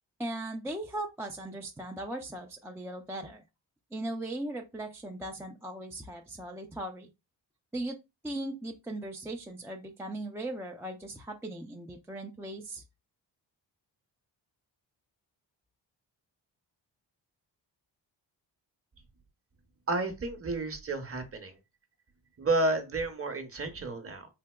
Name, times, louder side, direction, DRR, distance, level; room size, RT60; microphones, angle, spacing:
voice 1, 0.2-3.4 3.9-7.1 7.7-8.0 8.2-12.8, right 1 dB, 5° right, 0.4 m, -38 dB
voice 2, 19.9-21.5 22.4-24.3, right 2 dB, 30° right, 0.8 m, -31 dB
3.4 x 2.8 x 2.2 m
cardioid pair, 65°, 46 cm